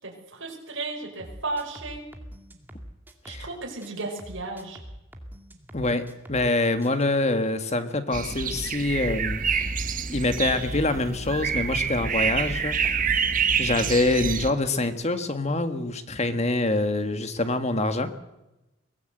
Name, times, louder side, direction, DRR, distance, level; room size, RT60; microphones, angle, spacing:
voice 1, 0.0-2.0 3.2-4.8, right 3 dB, 65° right, -1 dB, 5.6 m, -34 dB
sound 1, 1.2-3.5 3.8-6.5 6.8-7.1, equal, 10° right, 2.3 m, -44 dB
voice 2, 5.7-9.4 10.1-12.8 13.6-18.1, left 2 dB, 35° left, 9 dB, 1.7 m, -25 dB
sound 2, 8.1-14.5, right 6 dB, 40° right, 1.6 m, -27 dB
23.0 x 18.0 x 8.0 m, 0.96 s
head